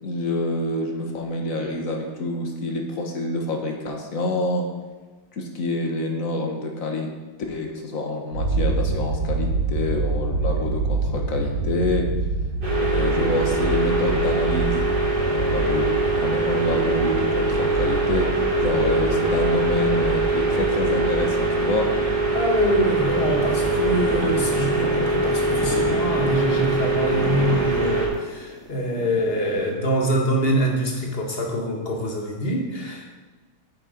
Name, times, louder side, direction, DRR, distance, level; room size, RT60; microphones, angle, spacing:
voice 1, 0.0-4.7 5.3-7.1 7.5-12.1 12.9-14.9 15.2-21.9, left 2 dB, 45° left, 2 dB, 1.4 m, -27 dB
sound 1, 8.3-22.8, right 3 dB, 80° right, 2.2 m, -28 dB
sound 2, 12.6-28.1, right 2 dB, 25° right, 1.9 m, -23 dB
voice 2, 22.3-33.1, equal, 30° left, 0 dB, 1.5 m, -25 dB
sound 3, 23.1-29.7, right 1 dB, 5° right, 0.6 m, -35 dB
8.7 x 6.7 x 5.1 m, 1.3 s
omnidirectional pair, 2.2 m